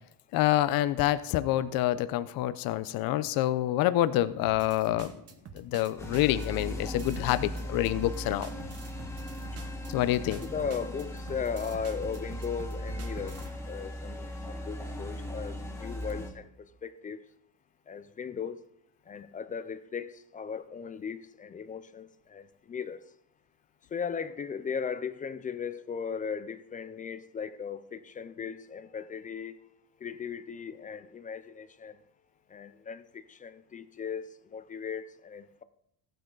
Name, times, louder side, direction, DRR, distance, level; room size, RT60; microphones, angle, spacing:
voice 1, 0.3-5.1 5.5-8.5 9.9-10.4, left 14 dB, 70° left, 0.6 m, -27 dB
sound 1, 4.4-13.5, right 5 dB, 40° right, 1.1 m, -47 dB
sound 2, 6.0-16.3, left 1 dB, 5° left, 1.9 m, -38 dB
voice 2, 10.3-13.4 13.7-16.5 16.8-17.2 17.9-18.6 19.1-23.0 23.9-29.5 30.0-32.0 32.5-33.0 33.3-35.6, left 6 dB, 25° left, 0.3 m, -37 dB
14.5 x 9.2 x 3.9 m
cardioid pair, 160°, 37 cm